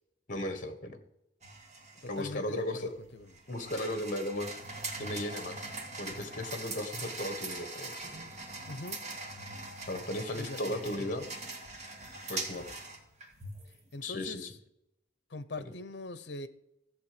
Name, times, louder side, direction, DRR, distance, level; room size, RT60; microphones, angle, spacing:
voice 1, 0.3-1.0 2.0-2.9 3.5-4.6 5.0-5.7 6.0-8.1 9.9-11.3 12.3-12.7 14.0-14.5 15.6-15.7, left 1 dB, 45° left, 1.3 m, -36 dB
sound 1, 1.4-13.8, right 2 dB, 40° right, 1.8 m, -42 dB
voice 2, 2.0-3.3 8.7-9.1 10.3-11.1 13.9-14.5 15.3-16.5, left 2 dB, 65° left, 0.8 m, -42 dB
14.0 x 7.7 x 5.0 m
head